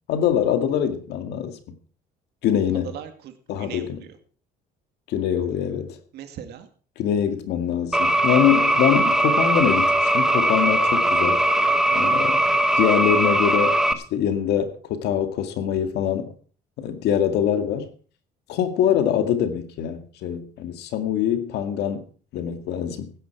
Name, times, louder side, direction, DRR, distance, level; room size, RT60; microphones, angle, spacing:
voice 1, 0.1-1.8 2.4-2.9 3.5-4.0 5.1-6.0 7.0-11.4 11.9-12.4 12.8-16.3 16.8-17.9 18.5-22.1 22.3-23.1, left 9 dB, 80° left, 2.0 m, -24 dB
voice 2, 2.8-4.2 6.1-6.7 11.9-12.3, right 9 dB, 75° right, 2.2 m, -39 dB
sound 1, 7.9-13.9, right 1 dB, 5° right, 1.0 m, -20 dB
16.0 x 9.8 x 4.7 m
cardioid pair, 110°, 17 cm